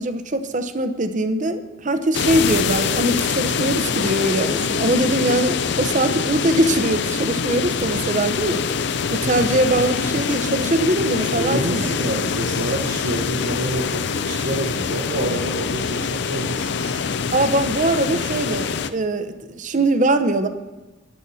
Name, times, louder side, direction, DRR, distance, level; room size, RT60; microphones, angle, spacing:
voice 1, 0.0-8.6 9.1-11.9 17.3-20.5, right 1 dB, 40° right, 10 dB, 0.7 m, -22 dB
sound 1, 2.1-18.9, left 6 dB, 55° left, 0.5 m, -24 dB
voice 2, 11.1-17.2, right 1 dB, 70° right, 0 dB, 1.3 m, -28 dB
12.0 x 9.9 x 4.1 m, 1.2 s
head